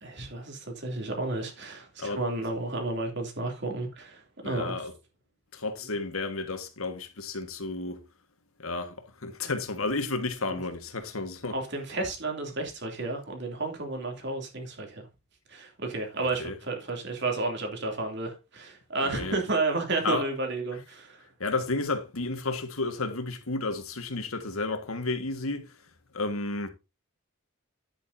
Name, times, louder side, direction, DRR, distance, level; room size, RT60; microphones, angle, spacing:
voice 1, 0.0-4.8 9.4-9.5 10.5-10.6 11.5-15.1 15.5-21.3, right 2 dB, 55° right, 2.9 m, -32 dB
voice 2, 4.4-4.9 5.5-8.0 8.6-11.6 16.4-16.6 19.0-19.3 20.0-20.3 21.4-25.8 26.1-26.7, left 3 dB, 85° left, 1.7 m, -32 dB
10.0 x 8.6 x 2.7 m
head